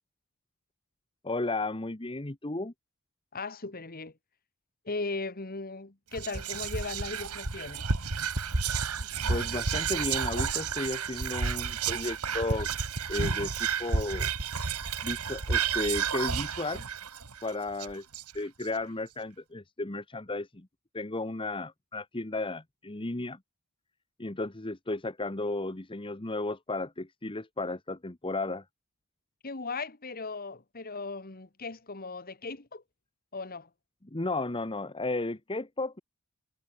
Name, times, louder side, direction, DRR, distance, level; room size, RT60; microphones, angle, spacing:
voice 1, 1.2-2.7 9.3-12.7 13.1-14.3 15.0-16.9 17.4-18.0 18.3-20.7 20.9-23.4 24.2-28.6 34.1-36.0, left 2 dB, 25° left, 1.2 m, -34 dB
voice 2, 3.3-4.1 4.9-7.9 29.4-32.8 33.3-33.7, left 3 dB, 40° left, 1.8 m, -37 dB
Whispering, 6.1-18.6, right 5 dB, 85° right, 2.2 m, -31 dB
head